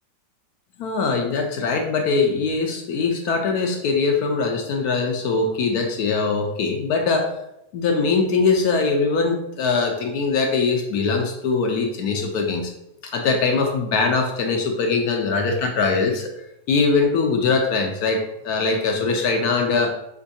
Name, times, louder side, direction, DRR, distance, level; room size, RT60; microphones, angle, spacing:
voice 1, 0.8-7.3 7.7-12.7 13.1-16.3 16.7-19.9, left 4 dB, 75° left, 3 dB, 0.9 m, -22 dB
5.1 x 3.5 x 2.7 m, 0.84 s
omnidirectional pair, 2.0 m